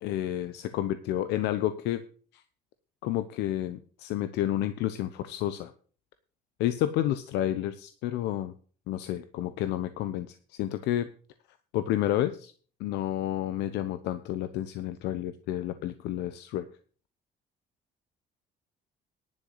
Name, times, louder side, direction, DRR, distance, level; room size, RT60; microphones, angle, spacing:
voice 1, 0.0-2.0 2.3-2.4 3.0-5.7 6.6-8.5 8.9-11.1 11.7-12.5 12.8-16.7, left 12 dB, 90° left, 11 dB, 0.9 m, -30 dB
11.0 x 6.4 x 7.8 m, 0.42 s
cardioid pair, 110°, 17 cm